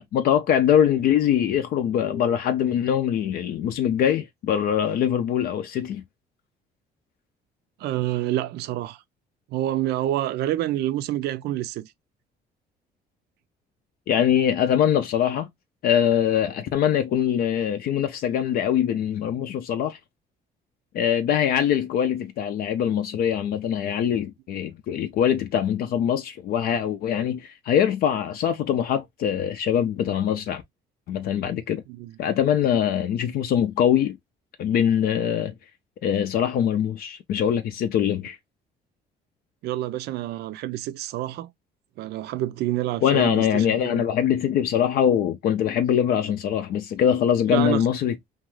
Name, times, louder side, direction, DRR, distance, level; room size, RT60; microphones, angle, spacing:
voice 1, 0.0-6.0 14.1-15.5 15.8-20.0 20.9-30.6 31.1-31.8 32.2-34.2 34.6-35.5 36.0-38.4 43.0-48.2, left 9 dB, 60° left, 0.4 m, -23 dB
voice 2, 7.8-9.0 9.5-11.9 31.9-32.2 39.6-41.5 42.0-44.0 47.5-47.9, right 14 dB, 75° right, 0.4 m, -28 dB
2.5 x 2.3 x 3.0 m
cardioid pair, 110°, 17 cm